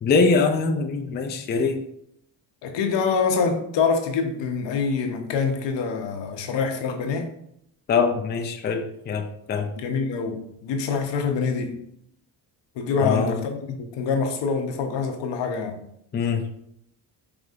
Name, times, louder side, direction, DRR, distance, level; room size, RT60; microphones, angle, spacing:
voice 1, 0.0-1.8 7.9-9.7 13.0-13.4 16.1-16.4, left 4 dB, 25° left, 5 dB, 0.4 m, -23 dB
voice 2, 2.6-7.3 9.8-11.8 12.8-15.8, left 5 dB, 80° left, 5 dB, 0.8 m, -25 dB
5.0 x 3.4 x 2.4 m, 0.75 s
cardioid pair, 130°, 43 cm